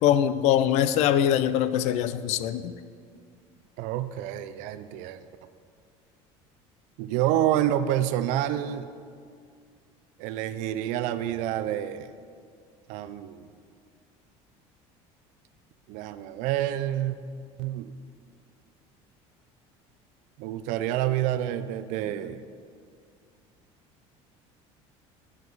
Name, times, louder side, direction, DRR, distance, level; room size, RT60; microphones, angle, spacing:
voice 1, 0.0-2.7, left 10 dB, 60° left, 13 dB, 0.4 m, -23 dB
voice 2, 3.8-5.2 7.0-8.9 10.2-12.1 12.9-13.5 15.9-17.2 17.6-17.9 20.4-22.4, right 12 dB, 75° right, 12 dB, 0.4 m, -28 dB
11.5 x 4.9 x 4.0 m, 2.2 s
cardioid pair, 130°, 13 cm